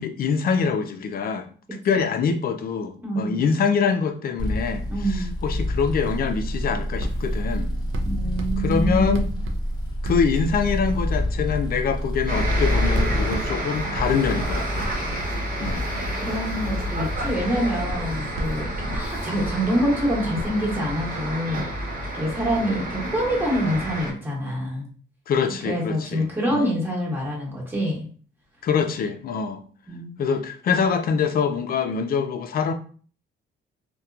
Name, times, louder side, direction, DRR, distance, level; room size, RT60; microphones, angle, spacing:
voice 1, 0.0-1.5 1.8-7.7 8.6-9.3 10.0-14.9 15.6-15.9 25.3-26.7 28.6-29.6 30.2-32.7, left 6 dB, 50° left, 7 dB, 0.4 m, -24 dB
voice 2, 3.0-3.5 4.9-5.3 8.0-9.3 16.3-21.7 22.1-24.9 25.6-28.1 29.9-30.1, equal, 10° right, -4 dB, 1.2 m, -26 dB
sound 1, 4.4-13.3, left 1 dB, 20° left, 0.7 m, -27 dB
Writing, 7.0-10.9 11.5-11.8 12.5-19.9 20.4-20.5, equal, 85° right, 0.5 m, -35 dB
sound 2, 12.3-24.1, right 1 dB, 45° right, 1.0 m, -29 dB
2.8 x 2.1 x 2.4 m, 0.42 s
cardioid pair, 90°, 20 cm